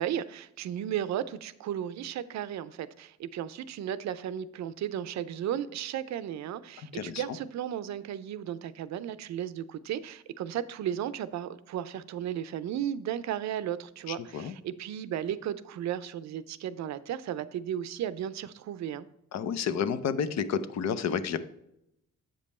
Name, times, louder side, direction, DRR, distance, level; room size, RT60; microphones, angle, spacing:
voice 1, 0.0-19.1, right 10 dB, 65° right, 0.5 m, -34 dB
voice 2, 6.9-7.4 14.1-14.5 19.3-21.4, left 7 dB, 60° left, 0.6 m, -31 dB
7.5 x 5.3 x 4.2 m
cardioid pair, 90°, 30 cm